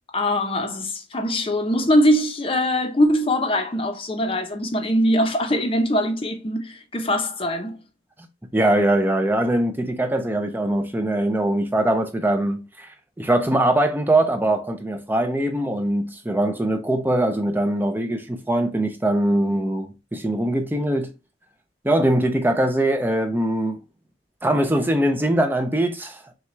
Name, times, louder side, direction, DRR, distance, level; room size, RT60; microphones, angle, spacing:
voice 1, 0.1-7.8, equal, 30° left, 0.7 m, -22 dB
voice 2, 8.5-21.1 21.8-23.8 24.4-26.2, right 1 dB, 10° right, 0.4 m, -22 dB
5.7 x 2.3 x 3.0 m
head